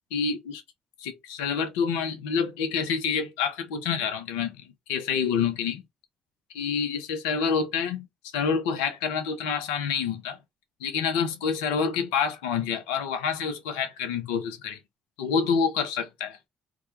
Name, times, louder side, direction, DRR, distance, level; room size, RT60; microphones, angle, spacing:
voice 1, 0.1-0.6 1.0-4.6 4.9-5.8 6.5-8.1 8.3-10.4 10.8-14.8 15.2-16.4, left 6 dB, 85° left, 0.4 m, -27 dB
2.2 x 2.1 x 3.0 m
hypercardioid pair, 50°, 4 cm